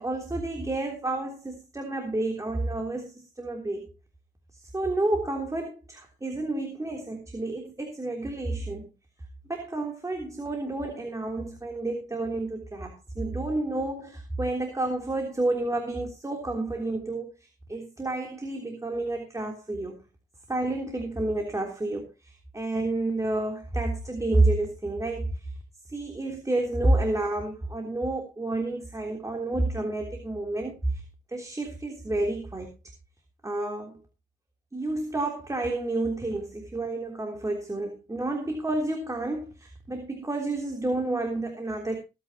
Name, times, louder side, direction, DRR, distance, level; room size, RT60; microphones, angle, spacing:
voice 1, 0.0-3.9 4.7-8.9 9.5-17.3 17.7-20.0 20.5-25.5 25.9-31.0 31.3-32.7 33.4-34.0 34.7-42.0, right 2 dB, 15° right, 2 dB, 3.4 m, -30 dB
21.0 x 9.4 x 2.9 m, 0.29 s
cardioid pair, 90°, 20 cm